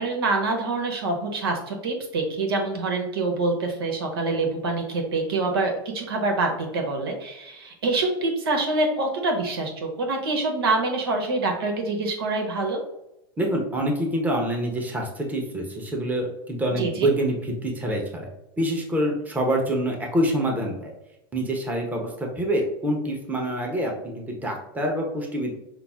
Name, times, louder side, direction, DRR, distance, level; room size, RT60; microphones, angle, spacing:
voice 1, 0.0-12.8 16.8-17.1, right 3 dB, 75° right, 3 dB, 1.1 m, -26 dB
voice 2, 13.4-18.3 18.6-20.9 21.3-25.5, right 1 dB, 15° right, 1 dB, 0.9 m, -26 dB
5.8 x 2.1 x 3.5 m, 0.89 s
hypercardioid pair, 105°, 12 cm